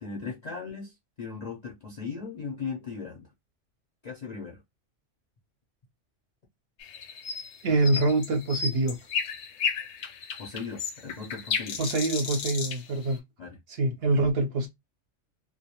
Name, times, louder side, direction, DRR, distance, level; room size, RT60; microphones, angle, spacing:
voice 1, 0.0-3.3 4.0-4.6 10.4-11.8 13.4-13.6 14.1-14.2, left 5 dB, 50° left, 0.5 m, -38 dB
sound 1, 6.8-13.2, left 6 dB, 70° left, 0.8 m, -34 dB
voice 2, 7.6-9.0 11.8-13.2 13.7-14.7, right 2 dB, 60° right, 0.8 m, -25 dB
2.2 x 2.1 x 2.8 m
omnidirectional pair, 1.3 m